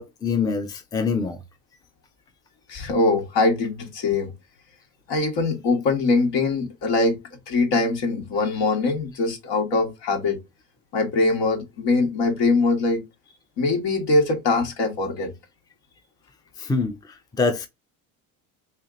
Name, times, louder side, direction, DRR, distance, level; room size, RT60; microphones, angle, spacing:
voice 1, 0.0-1.4 16.6-16.9 17.4-17.7, left 4 dB, 10° left, 0.6 m, -24 dB
voice 2, 2.7-4.3 5.1-7.2 7.5-10.4 10.9-13.0 13.6-15.3, left 3 dB, 60° left, 1.8 m, -22 dB
3.3 x 2.8 x 3.7 m
supercardioid pair, 90°, 40 cm